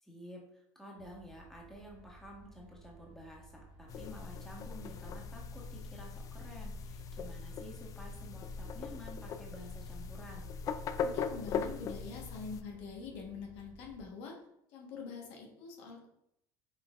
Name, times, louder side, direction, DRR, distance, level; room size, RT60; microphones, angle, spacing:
voice 1, 0.0-10.5, left 1 dB, 5° left, -2 dB, 1.4 m, -51 dB
sound 1, 1.0-14.0, right 3 dB, 75° right, 1.0 m, -57 dB
sound 2, 3.9-12.6, left 6 dB, 40° left, 0.4 m, -40 dB
voice 2, 11.0-14.4 14.7-16.1, left 5 dB, 75° left, 0 dB, 1.3 m, -45 dB
5.5 x 3.8 x 2.5 m, 0.75 s
supercardioid pair, 110°, 9 cm